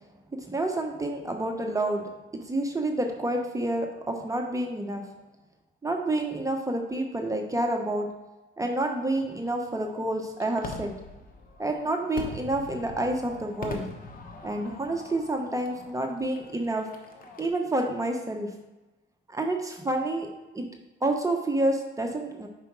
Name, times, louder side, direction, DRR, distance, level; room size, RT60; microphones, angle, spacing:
voice 1, 0.5-5.0 5.8-8.1 8.6-10.9 11.6-13.9 14.4-16.9 17.4-18.5 19.3-20.3 20.5-20.7 21.0-22.5, right 1 dB, 15° right, 2 dB, 1.0 m, -29 dB
Fireworks, 9.1-17.5, left 3 dB, 45° left, 1.0 m, -43 dB
5.0 x 4.9 x 4.6 m, 1.1 s
cardioid pair, 90°, 20 cm